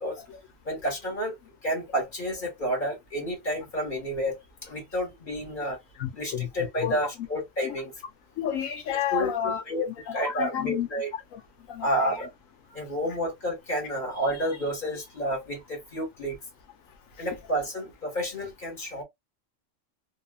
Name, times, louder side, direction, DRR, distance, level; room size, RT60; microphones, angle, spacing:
voice 1, 0.6-1.4 1.6-5.8 6.1-7.9 9.1-11.1 11.8-12.3 12.7-16.4 17.2-19.0, equal, 40° left, 1.4 m, -30 dB
voice 2, 6.0-6.5 6.8-6.9 7.6-7.7 8.4-9.6 10.1-10.9 11.3-11.4 11.7-11.9, left 9 dB, 85° left, 1.1 m, -30 dB
3.4 x 2.3 x 2.2 m
omnidirectional pair, 1.3 m